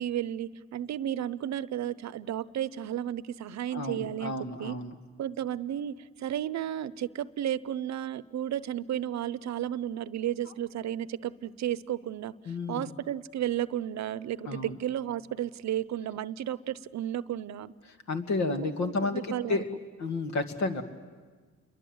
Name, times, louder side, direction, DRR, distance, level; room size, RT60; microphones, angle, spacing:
voice 1, 0.0-4.8 5.2-12.3 12.7-17.7 18.6-19.6, right 11 dB, 65° right, 17 dB, 0.8 m, -33 dB
voice 2, 3.7-4.9 12.5-12.9 14.5-14.8 17.9-19.7 20.0-20.8, left 3 dB, 65° left, 6 dB, 2.3 m, -31 dB
28.5 x 23.0 x 8.0 m, 1.4 s
cardioid pair, 90°, 30 cm